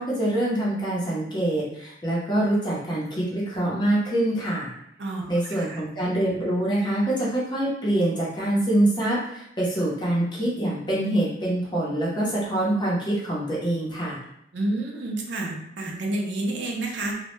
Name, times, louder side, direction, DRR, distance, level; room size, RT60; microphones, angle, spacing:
voice 1, 0.0-4.7 5.3-14.2, right 1 dB, 25° left, -6 dB, 0.6 m, -25 dB
voice 2, 5.0-5.8 14.5-17.2, right 2 dB, 75° right, 0 dB, 0.4 m, -29 dB
2.1 x 2.0 x 3.0 m, 0.77 s
head